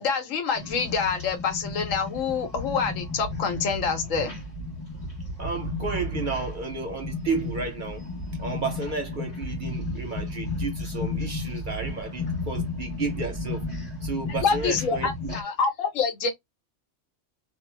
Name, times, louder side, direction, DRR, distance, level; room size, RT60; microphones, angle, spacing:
voice 1, 0.0-4.4 14.4-16.3, left 5 dB, 85° left, 1.2 m, -26 dB
sound 1, 0.5-15.4, left 2 dB, 30° left, 0.9 m, -33 dB
voice 2, 5.4-8.0 8.4-13.7 14.0-15.4, right 4 dB, 55° right, 0.6 m, -32 dB
2.4 x 2.1 x 3.1 m
omnidirectional pair, 1.3 m